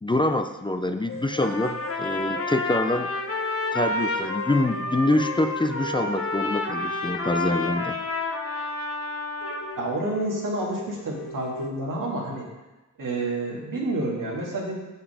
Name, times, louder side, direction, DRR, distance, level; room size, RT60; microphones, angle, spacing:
voice 1, 0.0-3.1 3.7-8.0, left 1 dB, 15° left, 7 dB, 0.4 m, -25 dB
sound 1, 1.1-8.4 8.7-8.8 9.1-9.2 9.4-11.7, left 1 dB, 85° left, 0.8 m, -40 dB
Trumpet, 1.4-9.8, left 2 dB, 45° left, 1.0 m, -30 dB
voice 2, 9.7-12.5 13.0-14.8, right 2 dB, 80° right, -3 dB, 2.1 m, -29 dB
7.0 x 5.5 x 4.9 m, 1.1 s
cardioid pair, 60°, 32 cm